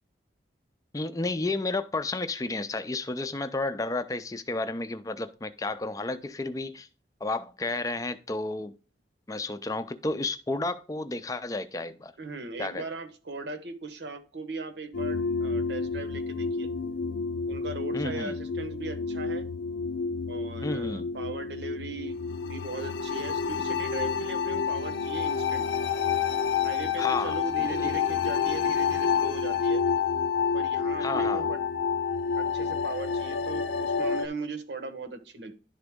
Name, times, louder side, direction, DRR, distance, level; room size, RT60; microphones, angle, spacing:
voice 1, 0.9-6.9 7.2-8.7 9.3-12.1 12.6-12.8 17.9-18.3 20.6-21.1 27.0-28.0 31.0-31.5, left 2 dB, 20° left, 0.4 m, -32 dB
voice 2, 12.2-16.7 17.5-19.5 20.3-22.2 22.4-25.7 26.6-29.8 30.5-31.6 32.4-35.5, right 3 dB, 75° right, 1.0 m, -38 dB
sound 1, 14.9-34.3, left 6 dB, 90° left, 0.5 m, -29 dB
11.0 x 3.9 x 3.5 m
head